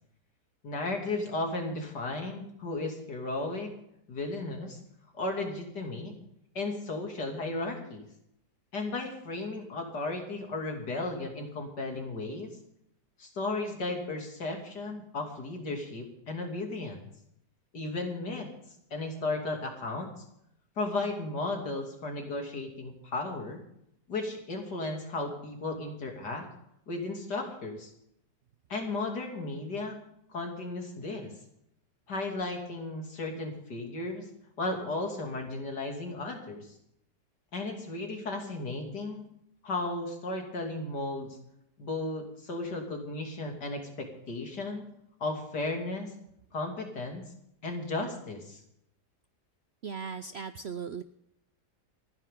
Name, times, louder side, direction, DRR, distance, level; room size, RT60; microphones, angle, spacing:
voice 1, 0.6-3.7 4.1-4.8 5.1-6.1 6.6-8.0 8.7-12.5 13.2-17.1 17.7-18.5 18.9-20.1 20.8-23.6 24.1-26.5 26.9-27.9 28.7-30.0 30.3-31.3 32.1-34.3 34.6-36.7 37.5-39.2 39.6-41.4 41.8-44.9 45.2-46.1 46.5-47.3 47.6-48.6, left 2 dB, 75° left, 2 dB, 3.3 m, -35 dB
voice 2, 49.8-51.0, right 6 dB, 60° right, 11 dB, 0.7 m, -37 dB
29.0 x 10.0 x 3.7 m, 0.77 s
omnidirectional pair, 1.8 m